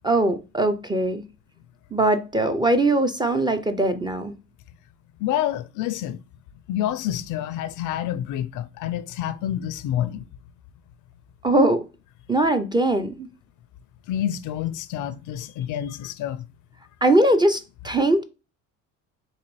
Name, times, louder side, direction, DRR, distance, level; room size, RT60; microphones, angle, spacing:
voice 1, 0.0-1.2 1.9-4.3 11.4-11.8 12.3-13.3 17.0-18.2, right 1 dB, 10° right, 0.4 m, -21 dB
voice 2, 5.2-6.2 6.7-10.2 14.1-16.4, left 11 dB, 55° left, 0.4 m, -28 dB
3.9 x 2.6 x 3.0 m
supercardioid pair, 80°, 38 cm